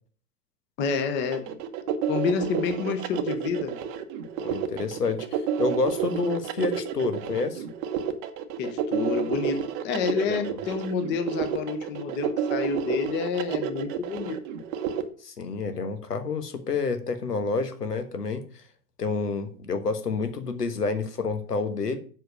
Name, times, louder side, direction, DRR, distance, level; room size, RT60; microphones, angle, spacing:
voice 1, 0.8-1.5 2.1-3.8 8.6-14.4, left 6 dB, 25° left, 8 dB, 1.1 m, -29 dB
sound 1, 1.3-15.0, right 9 dB, 35° right, 1.0 m, -30 dB
voice 2, 4.4-7.6 10.3-10.6 15.2-18.4 19.0-22.0, left 4 dB, 85° left, 8 dB, 1.4 m, -29 dB
7.9 x 4.9 x 6.6 m, 0.43 s
figure-of-eight pair, 115°, 47 cm